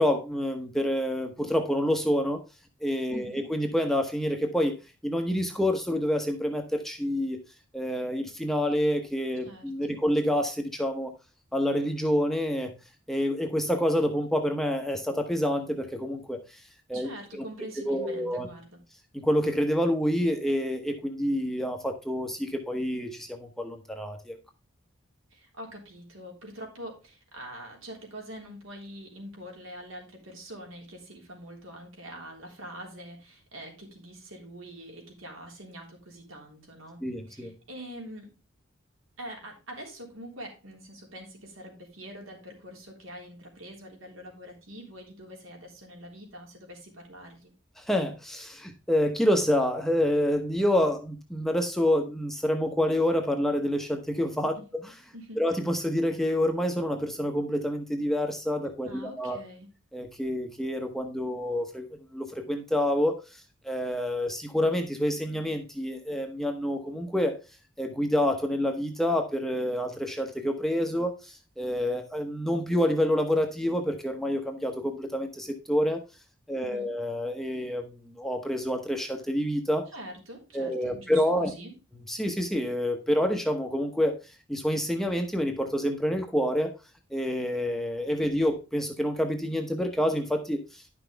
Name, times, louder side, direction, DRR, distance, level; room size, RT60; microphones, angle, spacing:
voice 1, 0.0-2.4 2.8-4.8 5.0-7.4 7.7-11.1 11.5-12.8 13.1-16.6 16.9-17.1 17.4-17.5 17.8-18.5 19.1-24.4 37.0-37.5 47.8-54.8 55.4-59.4 59.9-67.3 67.8-76.0 76.5-79.9 80.5-81.5 81.9-84.1 84.5-86.7 87.1-90.8, equal, ahead, 4 dB, 0.9 m, -28 dB
voice 2, 3.1-3.5 9.4-10.0 16.9-18.8 25.3-38.3 39.2-47.5 54.6-54.7 55.1-55.4 58.8-59.7 76.5-76.9 79.9-81.8, equal, 80° right, 1 dB, 3.5 m, -44 dB
10.5 x 6.0 x 3.4 m, 0.30 s
head